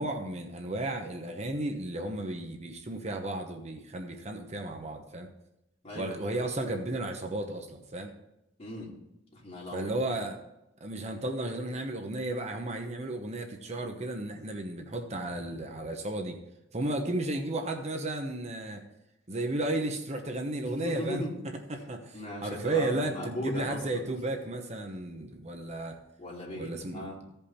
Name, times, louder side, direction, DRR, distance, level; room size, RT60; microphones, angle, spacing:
voice 1, 0.0-5.3 5.9-8.1 9.7-10.4 10.8-16.4 16.7-18.8 19.3-21.2 21.7-26.0 26.6-27.1, right 2 dB, 35° right, 4 dB, 1.0 m, -33 dB
voice 2, 5.8-6.4 8.6-8.9 9.3-9.9 20.6-21.3 22.1-24.0 26.2-27.2, equal, 35° left, -4 dB, 3.0 m, -38 dB
15.5 x 5.5 x 4.3 m, 0.89 s
head